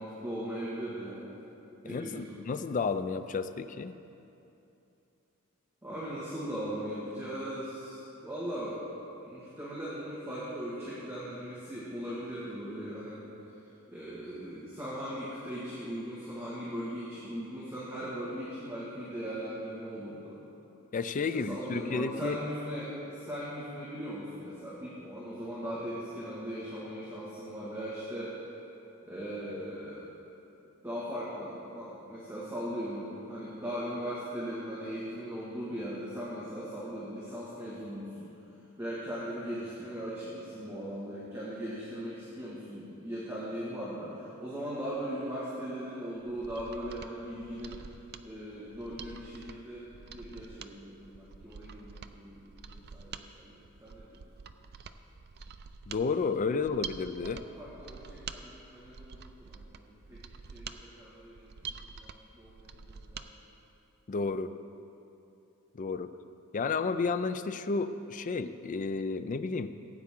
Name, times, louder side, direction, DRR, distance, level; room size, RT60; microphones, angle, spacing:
voice 1, 0.0-1.3 1.8-2.4 5.8-8.8 9.2-13.3 13.9-20.4 21.3-28.4 29.0-30.0 30.8-38.3 38.8-47.8 48.2-53.6 53.8-54.2 56.5-56.6 57.2-60.2 60.5-63.3, equal, 10° right, -9 dB, 1.8 m, -39 dB
voice 2, 1.8-4.0 20.9-22.4 55.9-57.4 64.1-64.5 65.7-66.1 66.5-69.7, left 4 dB, 35° left, 11 dB, 0.4 m, -32 dB
Mechanisms, 46.3-63.3 63.6-63.7, right 6 dB, 50° right, 0.4 m, -47 dB
17.0 x 8.7 x 3.7 m, 2.9 s
head